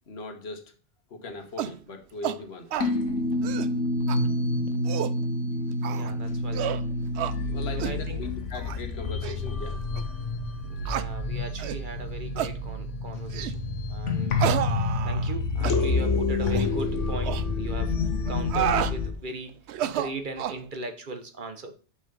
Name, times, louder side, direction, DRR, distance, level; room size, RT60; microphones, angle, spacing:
voice 1, 0.1-0.7 1.1-2.8 7.4-9.9, left 3 dB, 60° left, 4 dB, 1.5 m, -39 dB
sound 1, 1.6-1.8 2.2-2.4 2.7-2.9 3.3-3.7 4.1-4.2 4.7-5.2 5.8-6.1 6.5-6.8 7.2-7.4 7.8-8.0 8.5-8.8 9.2-9.4 10.0-10.1 10.9-11.1 11.6-11.8 12.4-12.6 13.3-13.6 14.4-15.3 15.6-15.8 16.4-16.7 17.2-17.4 18.3-19.0 19.7-20.6, right 11 dB, 70° right, 0.8 m, -30 dB
sound 2, 2.8-19.1, left 2 dB, 80° left, 1.3 m, -28 dB
voice 2, 5.9-6.8 7.7-8.2 10.7-14.4 15.0-21.7, right 2 dB, 45° right, 7 dB, 1.2 m, -39 dB
6.3 x 6.2 x 5.4 m, 0.36 s
omnidirectional pair, 1.2 m